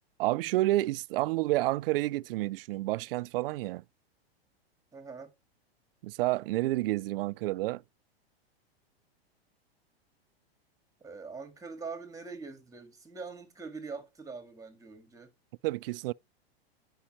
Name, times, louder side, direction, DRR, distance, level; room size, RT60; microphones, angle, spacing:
voice 1, 0.2-3.8 6.0-7.8 15.6-16.1, right 18 dB, 65° right, 0.4 m, -29 dB
voice 2, 4.9-5.3 11.0-15.3, right 4 dB, 10° right, 1.8 m, -43 dB
9.8 x 5.5 x 3.0 m
hypercardioid pair, 125°, 31 cm